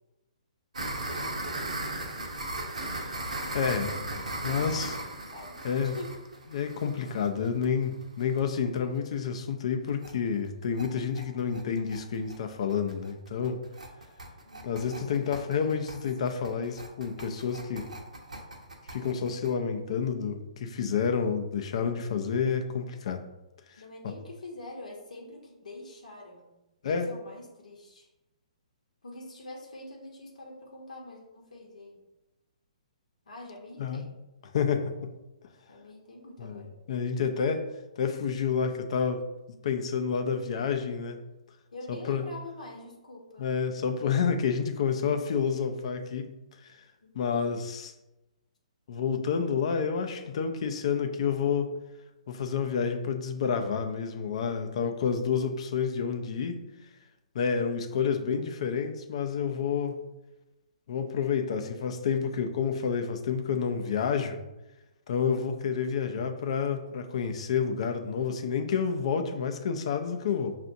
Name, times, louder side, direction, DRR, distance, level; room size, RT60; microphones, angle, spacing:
sound 1, 0.7-8.4 8.8-8.9 9.1-9.2 9.5-9.6 9.9-10.1 10.4-19.5, right 2 dB, 80° right, 0.7 m, -37 dB
voice 1, 0.9-1.5 4.4-4.9 5.2-6.2 14.4-15.8 23.8-26.5 26.8-28.1 29.0-32.0 33.3-34.1 35.7-36.7 41.7-43.5 45.0-45.7 47.0-47.6, left 2 dB, 80° left, -1 dB, 0.9 m, -45 dB
voice 2, 3.5-4.9 5.6-5.9 6.5-13.6 14.6-17.9 18.9-23.2 26.8-27.1 33.8-34.0 34.5-35.1 36.4-36.6 36.9-37.7 38.0-39.2 39.6-41.2 41.9-42.2 43.4-46.3 47.1-47.9 48.9-51.7 52.3-56.7 57.3-60.0 60.9-64.4 65.1-70.6, left 6 dB, 55° left, 6 dB, 0.5 m, -29 dB
5.7 x 2.5 x 2.6 m, 1.0 s
hypercardioid pair, 130°, 4 cm